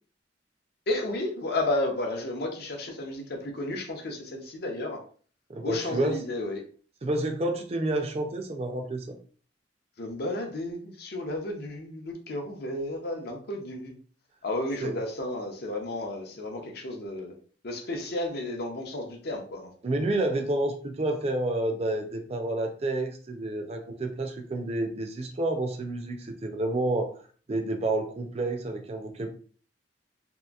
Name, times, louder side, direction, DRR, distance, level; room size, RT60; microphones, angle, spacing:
voice 1, 0.9-5.0 5.6-6.6 10.0-14.0 14.4-17.3 17.6-19.7, left 1 dB, 60° left, 3 dB, 0.6 m, -32 dB
voice 2, 5.5-6.2 7.0-9.2 14.8-14.9 19.8-27.2 27.5-29.3, right 2 dB, 35° right, 4 dB, 0.5 m, -29 dB
2.8 x 2.5 x 2.4 m, 0.42 s
head